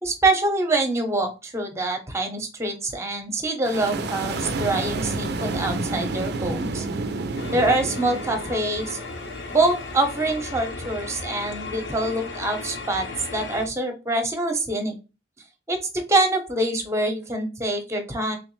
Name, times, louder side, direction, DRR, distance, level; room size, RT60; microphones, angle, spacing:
voice 1, 0.0-6.8 7.5-9.0 9.5-13.1 13.3-15.0 15.7-18.4, right 2 dB, 15° right, 5 dB, 0.7 m, -25 dB
sound 1, 3.6-10.3, right 3 dB, 55° right, 0.4 m, -30 dB
sound 2, 7.4-13.7, left 3 dB, 65° left, 0.7 m, -35 dB
3.4 x 3.1 x 3.0 m, 0.30 s
head